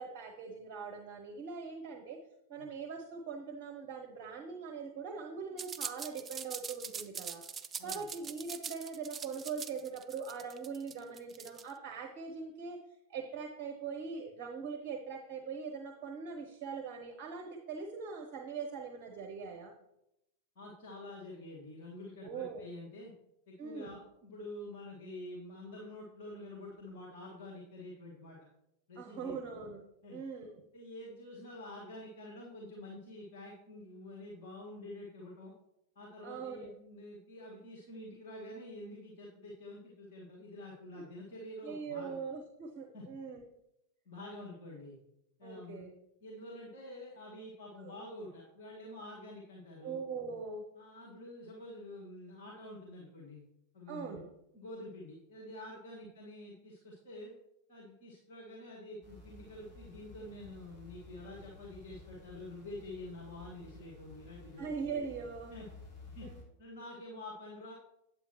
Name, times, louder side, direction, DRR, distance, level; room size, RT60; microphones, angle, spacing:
voice 1, 0.0-2.2 2.5-7.4 7.8-12.8 13.1-19.7 22.2-22.6 23.6-24.0 29.0-29.8 30.1-30.6 36.2-36.7 40.9-41.0 41.6-43.4 45.4-45.9 47.8-48.0 49.8-50.6 53.9-54.3 64.6-65.5 66.2-66.4, right 5 dB, 40° right, 4 dB, 0.9 m, -41 dB
sound 1, 5.6-11.7, right 6 dB, 20° right, 0.4 m, -42 dB
voice 2, 20.6-23.1 23.5-28.4 28.9-29.4 30.0-30.2 30.7-35.5 36.0-42.2 42.9-43.0 44.1-45.0 45.4-45.9 46.2-50.0 50.7-53.4 53.7-54.3 54.5-57.3 57.7-64.9 65.5-65.7 66.1-66.3 66.6-67.7, left 1 dB, 55° left, -4 dB, 1.8 m, -48 dB
sound 2, 59.0-66.4, left 2 dB, 30° left, 2.8 m, -54 dB
8.5 x 7.9 x 3.1 m, 0.84 s
figure-of-eight pair, 90°, 0 cm